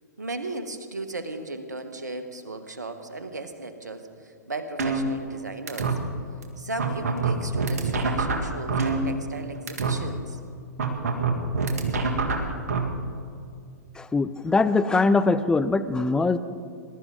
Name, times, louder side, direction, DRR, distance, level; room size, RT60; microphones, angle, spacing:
voice 1, 0.2-5.9 6.6-10.4, right 2 dB, 85° right, 8 dB, 1.3 m, -36 dB
sound 1, 4.8-5.4 5.7-5.9 6.4-6.5 6.8-9.4 9.7-9.9 10.8-12.8, right 4 dB, 65° right, 1.9 m, -25 dB
voice 2, 14.0-16.4, left 3 dB, 10° left, 12 dB, 0.5 m, -22 dB
20.5 x 12.0 x 3.9 m, 2.3 s
figure-of-eight pair, 110°, 9 cm